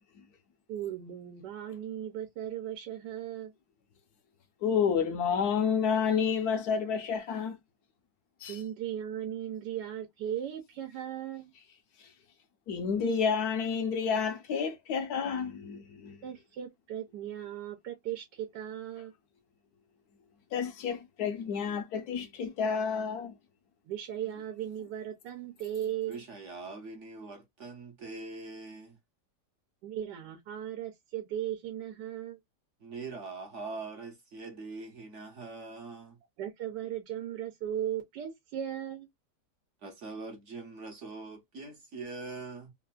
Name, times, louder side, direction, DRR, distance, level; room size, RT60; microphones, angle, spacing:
voice 1, 0.7-3.5 8.5-11.5 16.2-19.1 23.8-26.2 29.8-32.4 36.4-39.1, right 10 dB, 85° right, 1.3 m, -37 dB
voice 2, 4.6-7.6 8.4-8.6 12.7-16.2 20.5-23.3, left 6 dB, 70° left, 1.1 m, -30 dB
voice 3, 26.1-29.0 32.8-36.2 39.8-42.7, right 3 dB, 55° right, 0.9 m, -43 dB
3.3 x 2.4 x 2.2 m
omnidirectional pair, 1.8 m